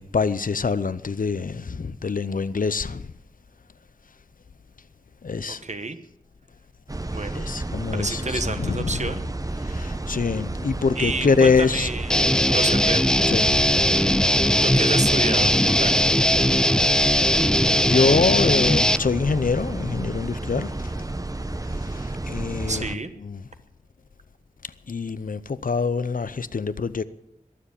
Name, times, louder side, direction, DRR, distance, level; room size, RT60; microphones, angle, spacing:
voice 1, 0.0-3.1 5.2-5.6 7.3-9.1 9.7-11.9 13.3-13.8 14.1-14.3 16.3-16.5 16.7-17.2 17.8-20.8 21.9-22.9 23.2-23.4 24.9-27.0, left 5 dB, 80° left, 0.7 m, -25 dB
voice 2, 5.6-6.0 7.1-7.5 7.9-9.2 11.0-12.2 12.5-13.1 14.6-15.9 22.7-23.1, right 3 dB, 55° right, 1.3 m, -29 dB
sound 1, 6.9-23.0, right 2 dB, 25° right, 0.9 m, -31 dB
Guitar, 12.1-19.0, equal, 5° left, 0.5 m, -19 dB
22.0 x 7.4 x 8.5 m
wide cardioid pair, 60°, 14 cm